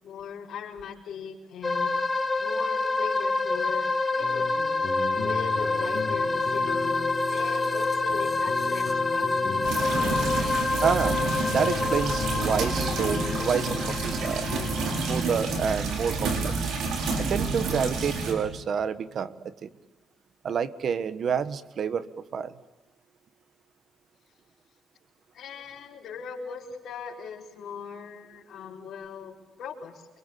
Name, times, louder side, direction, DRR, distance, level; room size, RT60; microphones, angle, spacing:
voice 1, 0.0-4.9 5.2-9.7 25.3-30.1, left 6 dB, 75° left, -2 dB, 4.4 m, -40 dB
sound 1, 1.6-15.2, left 3 dB, 20° left, 2.8 m, -27 dB
sound 2, 4.2-14.7, left 5 dB, 55° left, 3.7 m, -37 dB
sound 3, 9.6-18.3, right 4 dB, 80° right, 6.5 m, -29 dB
voice 2, 10.8-11.2 11.4-14.5 15.1-16.5 17.2-19.7 20.4-22.1 22.3-22.6, right 7 dB, 55° right, 14 dB, 1.4 m, -28 dB
27.0 x 23.5 x 8.5 m, 1.1 s
cardioid pair, 90°, 0 cm